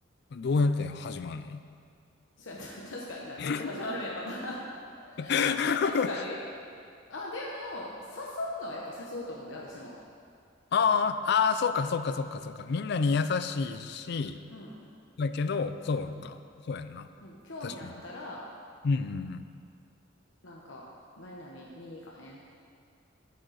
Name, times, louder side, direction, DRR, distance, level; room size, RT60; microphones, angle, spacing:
voice 1, 0.3-1.6 3.4-3.7 5.2-6.1 10.7-14.4 15.2-16.4 16.7-17.1 17.6-17.9 18.8-19.4, left 5 dB, 60° left, 11 dB, 0.4 m, -28 dB
voice 2, 2.4-4.7 5.0-5.4 5.8-6.4 7.1-9.9 14.5-14.8 16.1-16.2 17.2-18.4 20.4-20.8 21.2-22.4, left 1 dB, 75° left, -3 dB, 0.9 m, -39 dB
9.0 x 8.4 x 4.0 m, 2.3 s
head